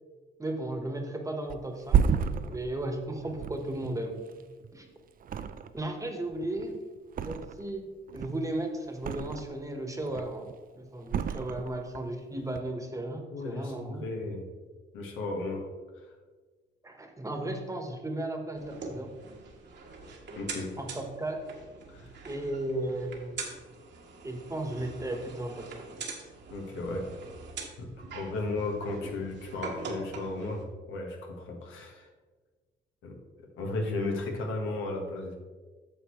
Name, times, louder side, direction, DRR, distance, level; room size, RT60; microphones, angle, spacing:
voice 1, 0.4-2.0 2.5-4.2 4.7-4.9 5.7-6.8 7.2-7.9 8.1-14.0 16.8-19.1 20.8-21.4 22.2-23.4 24.2-25.9, right 1 dB, 15° right, 3 dB, 1.3 m, -35 dB
Thump thud, 1.5-4.8 5.2-6.0 6.3-7.8 8.1-9.6 10.0-10.5 11.1-12.1 12.4-12.6, right 7 dB, 45° right, 0.4 m, -31 dB
voice 2, 13.3-14.4 14.9-15.7 20.3-20.7 21.9-22.2 26.5-27.1 27.8-32.1 33.0-33.2 33.6-35.3, left 2 dB, 90° left, 1 dB, 1.5 m, -35 dB
sound 1, 18.5-30.6, right 4 dB, 60° right, 1.6 m, -43 dB
8.8 x 6.6 x 3.2 m, 1.4 s
cardioid pair, 90°, 20 cm